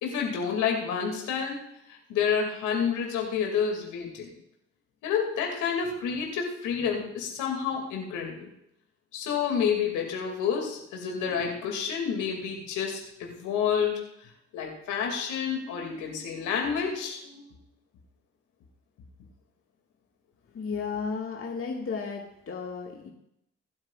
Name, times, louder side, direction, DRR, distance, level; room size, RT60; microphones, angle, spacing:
voice 1, 0.0-1.6 1.9-4.3 5.0-8.5 9.1-14.0 14.5-17.5, left 7 dB, 70° left, 1 dB, 2.6 m, -29 dB
voice 2, 20.5-23.1, left 5 dB, 45° left, 0 dB, 1.9 m, -34 dB
21.5 x 12.0 x 2.5 m, 0.78 s
hypercardioid pair, 45°, 31 cm